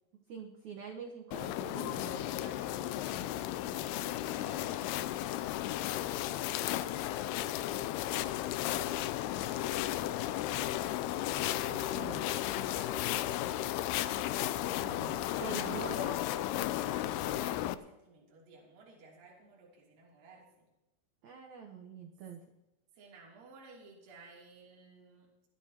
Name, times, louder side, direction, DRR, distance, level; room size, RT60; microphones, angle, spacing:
voice 1, 0.3-2.3 11.7-12.2 14.8-16.2 21.2-22.4, right 6 dB, 85° right, 3 dB, 1.6 m, -45 dB
sound 1, 1.3-17.7, left 13 dB, 85° left, 2.3 m, -34 dB
voice 2, 1.9-8.2 8.7-10.4 11.6-11.9 12.2-13.4 14.9-15.8 16.5-20.7 22.9-25.5, right 3 dB, 55° right, -3 dB, 4.4 m, -57 dB
22.0 x 11.5 x 2.9 m, 0.97 s
omnidirectional pair, 5.1 m